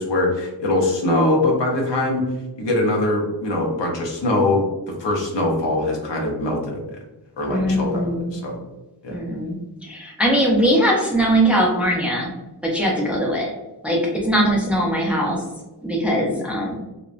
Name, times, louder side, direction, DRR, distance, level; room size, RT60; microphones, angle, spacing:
voice 1, 0.0-2.2 2.6-4.6 5.0-6.8 7.4-8.6 9.0-9.2, left 2 dB, 80° left, 0 dB, 0.8 m, -22 dB
voice 2, 7.5-8.4 9.1-9.6 9.8-12.3 12.6-13.5 13.8-15.4 15.8-16.7, equal, 5° right, -2 dB, 0.5 m, -20 dB
2.9 x 2.1 x 2.4 m, 1.0 s
wide cardioid pair, 120°, 43 cm